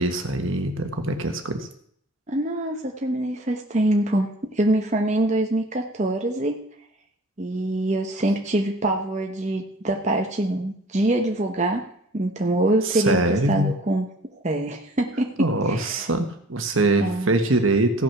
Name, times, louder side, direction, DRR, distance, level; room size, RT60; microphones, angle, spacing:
voice 1, 0.0-1.7 12.8-13.7 15.4-18.0, right 2 dB, 65° right, 6 dB, 1.4 m, -23 dB
voice 2, 2.3-6.6 7.4-11.8 12.1-15.3 15.7-16.1 17.0-17.3, right 1 dB, 35° right, 2 dB, 0.9 m, -24 dB
15.5 x 6.0 x 6.0 m, 0.65 s
head